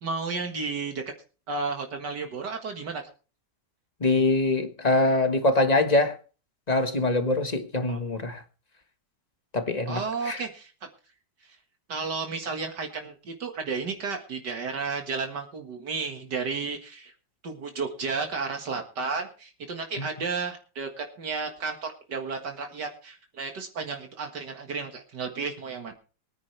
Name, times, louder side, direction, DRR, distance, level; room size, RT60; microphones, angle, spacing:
voice 1, 0.0-1.0 1.5-3.0 7.9-8.0 9.9-10.7 11.9-17.1 17.4-25.9, right 4 dB, 75° right, 2.3 m, -32 dB
voice 2, 4.0-6.2 6.7-8.4 9.5-10.4 20.0-20.1, left 2 dB, 25° left, 1.5 m, -24 dB
23.5 x 10.0 x 3.3 m
omnidirectional pair, 1.9 m